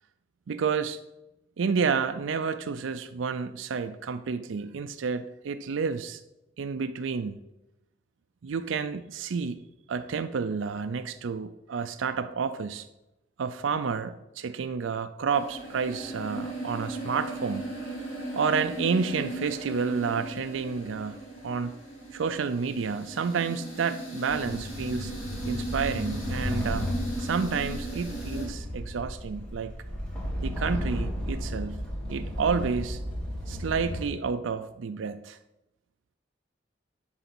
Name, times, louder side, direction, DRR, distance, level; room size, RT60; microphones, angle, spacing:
voice 1, 0.5-1.0 1.6-6.2 6.6-7.4 8.4-9.6 9.9-12.9 13.4-17.7 18.4-21.8 22.1-25.1 25.5-26.9 27.2-29.7 30.4-31.8 32.1-33.0 33.5-35.4, right 5 dB, 85° right, 10 dB, 0.4 m, -30 dB
sound 1, 15.3-28.5, right 2 dB, 35° left, 2.6 m, -37 dB
sound 2, 24.3-34.0, equal, 5° left, 1.7 m, -34 dB
10.5 x 4.0 x 6.0 m, 0.93 s
head